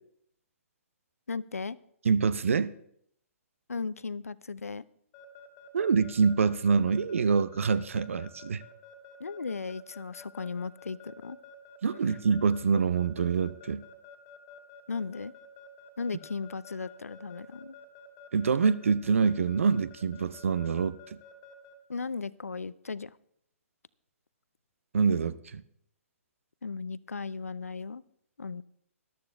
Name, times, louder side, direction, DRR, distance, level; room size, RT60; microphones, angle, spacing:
voice 1, 1.3-1.8 3.7-4.8 9.2-11.4 14.9-15.3 16.0-17.8 21.9-23.1 26.6-28.0 28.4-28.6, left 4 dB, 80° left, 19 dB, 0.5 m, -36 dB
voice 2, 2.0-2.7 5.7-8.6 11.8-13.8 18.3-21.0 24.9-25.6, right 5 dB, 65° right, 17 dB, 0.6 m, -25 dB
Keyboard (musical) / Alarm, 5.1-21.7, left 7 dB, 30° left, 2.0 m, -50 dB
13.5 x 12.0 x 3.4 m, 0.70 s
figure-of-eight pair, 125°, 8 cm